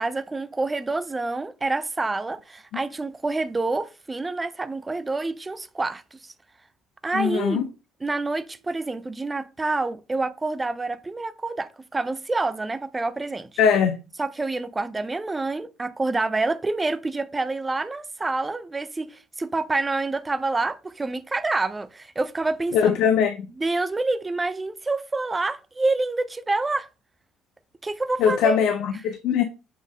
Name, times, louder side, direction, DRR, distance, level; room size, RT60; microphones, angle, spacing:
voice 1, 0.0-6.3 7.0-7.7 8.0-13.5 14.2-23.0 23.5-26.9 27.8-28.6 28.9-29.0, right 3 dB, 10° right, 0.4 m, -27 dB
voice 2, 7.1-7.6 13.6-13.9 22.7-23.3 28.2-29.4, left 7 dB, 60° left, 0.6 m, -21 dB
7.3 x 4.0 x 3.6 m
cardioid pair, 170°, 0 cm